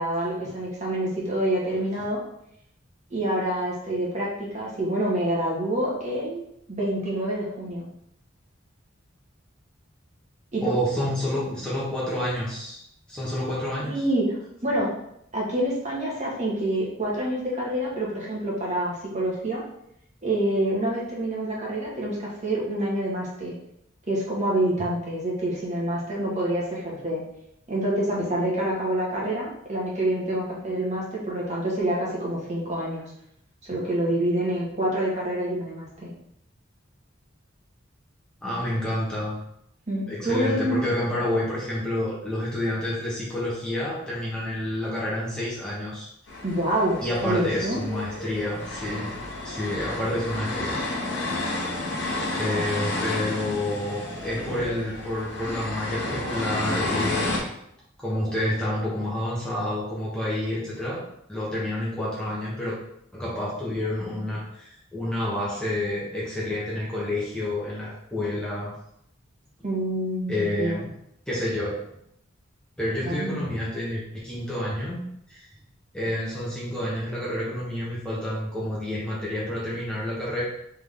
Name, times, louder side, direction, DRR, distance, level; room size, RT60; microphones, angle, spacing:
voice 1, 0.0-2.2 3.1-6.4 6.7-7.8 10.5-10.8 13.9-14.9 15.3-19.6 20.2-23.5 24.1-27.2 27.7-33.1 33.7-36.1 39.9-40.9 46.4-47.8 52.5-52.7 69.6-70.8 73.0-73.5, right 1 dB, 35° right, -5 dB, 1.3 m, -27 dB
voice 2, 10.6-12.8 13.1-14.0 24.8-24.9 38.4-39.4 40.1-46.1 47.0-49.1 49.4-50.8 52.4-57.5 58.0-61.0 61.3-62.8 63.1-68.8 70.3-70.9 71.3-71.8 72.8-75.5 75.9-80.4, left 1 dB, 5° left, -7 dB, 0.9 m, -29 dB
sound 1, 46.3-57.4, left 2 dB, 60° left, 0.9 m, -31 dB
3.5 x 3.5 x 3.5 m, 0.74 s
head